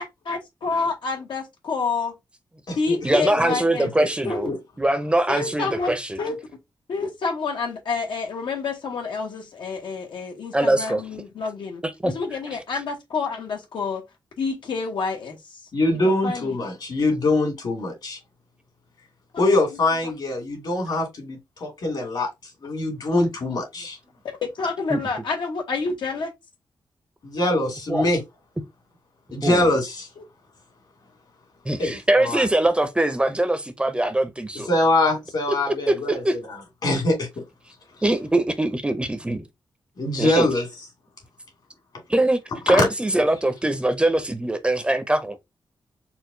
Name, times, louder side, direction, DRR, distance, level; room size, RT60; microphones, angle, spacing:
voice 1, 0.0-2.2 2.7-3.9 4.2-4.5 5.3-6.4 6.9-14.0 14.4-15.6 16.0-16.6 20.0-20.1 24.4-26.3 30.2-30.3, left 4 dB, 85° left, 1.1 m, -28 dB
voice 2, 3.0-4.5 4.8-6.2 10.5-11.0 11.8-12.1 24.9-25.0 27.9-28.1 29.4-29.7 31.7-34.7 35.5-36.4 38.0-39.4 40.2-40.5 42.1-42.4 42.7-45.4, right 1 dB, 15° right, 0.5 m, -22 dB
voice 3, 15.7-18.2 19.4-22.3 22.6-24.0 27.2-28.2 29.3-30.1 31.8-32.4 34.7-36.2 36.8-37.4 40.0-40.7 42.7-42.9, left 2 dB, 65° left, 2.2 m, -23 dB
4.4 x 2.2 x 3.7 m
wide cardioid pair, 135°, 8 cm